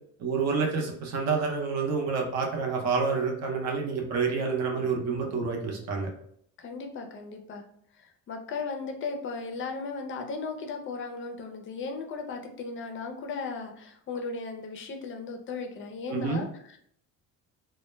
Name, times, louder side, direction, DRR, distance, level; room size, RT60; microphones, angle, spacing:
voice 1, 0.2-6.1 16.1-16.4, right 5 dB, 55° right, 1 dB, 0.6 m, -28 dB
voice 2, 6.6-7.6 7.9-16.8, left 4 dB, 40° left, 4 dB, 0.4 m, -36 dB
2.1 x 2.0 x 3.1 m, 0.66 s
cardioid pair, 140°, 32 cm